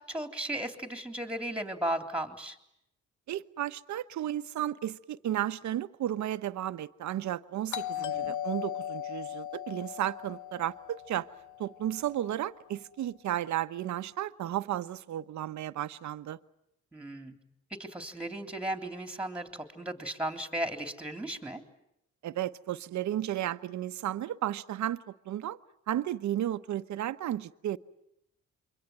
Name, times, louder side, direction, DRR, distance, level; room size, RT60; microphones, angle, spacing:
voice 1, 0.0-2.6 8.0-8.4 16.9-17.4 17.8-21.6, right 1 dB, 5° right, 3.3 m, -36 dB
voice 2, 3.3-11.3 11.6-16.4 22.2-25.6 25.9-27.8, right 12 dB, 70° right, 1.0 m, -33 dB
Doorbell, 7.7-12.3, left 11 dB, 75° left, 1.1 m, -38 dB
27.5 x 23.5 x 9.2 m
cardioid pair, 90°, 30 cm